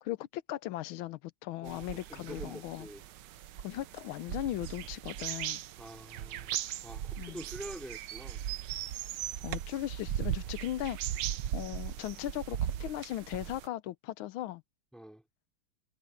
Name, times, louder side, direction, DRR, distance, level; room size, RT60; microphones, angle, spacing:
voice 1, 0.0-2.9 3.6-5.6 7.2-7.4 9.4-11.0 11.5-14.6, left 14 dB, 80° left, 1.5 m, -38 dB
voice 2, 1.6-3.0 5.8-6.5 6.8-8.4 14.9-15.2, right 1 dB, ahead, 3.3 m, -46 dB
sound 1, 1.7-13.7, right 11 dB, 70° right, 1.3 m, -38 dB
omnidirectional pair, 2.3 m